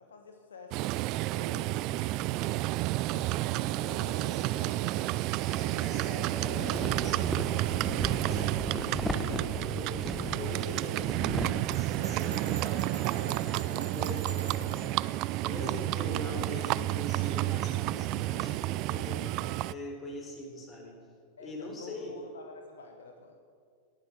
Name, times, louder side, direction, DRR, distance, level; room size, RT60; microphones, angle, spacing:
voice 1, 0.0-2.5 4.0-4.3 5.6-6.0 13.0-13.4 15.6-15.8 19.1-19.6 21.4-23.4, left 4 dB, 70° left, 5 dB, 1.3 m, -49 dB
Livestock farm animals working animals, 0.7-19.7, right 17 dB, 40° right, 0.3 m, -31 dB
voice 2, 3.0-4.8 5.5-19.4 19.7-21.0 21.4-22.2, left 1 dB, 25° left, 1 dB, 3.9 m, -43 dB
sound 1, 5.2-5.4 6.1-13.8, right 1 dB, ahead, 1.2 m, -38 dB
Bell, 11.7-14.9, right 4 dB, 80° right, 2.3 m, -45 dB
18.0 x 10.0 x 6.8 m, 2.1 s
figure-of-eight pair, 90°, 0 cm